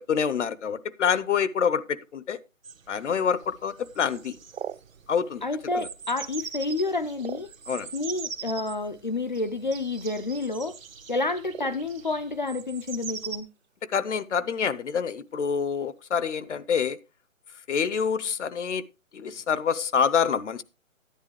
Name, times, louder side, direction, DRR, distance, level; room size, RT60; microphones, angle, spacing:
voice 1, 0.1-2.4 2.9-4.4 5.1-5.4 5.8-5.9 7.7-7.9 13.9-17.0 17.7-18.8 19.1-20.6, left 7 dB, 60° left, 0.8 m, -26 dB
sound 1, 2.6-13.4, right 6 dB, 70° right, 1.3 m, -42 dB
sound 2, 4.3-6.3 6.7-8.1 8.9-9.0 9.3-9.6 9.9-10.3 10.6-10.8 11.5-12.5 12.8-13.7 13.9-14.0 14.4-14.7 15.2-15.6, right 8 dB, 55° right, 0.5 m, -41 dB
voice 2, 5.4-7.5 7.9-10.8 11.1-13.5, left 3 dB, 35° left, 0.4 m, -29 dB
10.5 x 10.0 x 3.1 m
figure-of-eight pair, 150°, 41 cm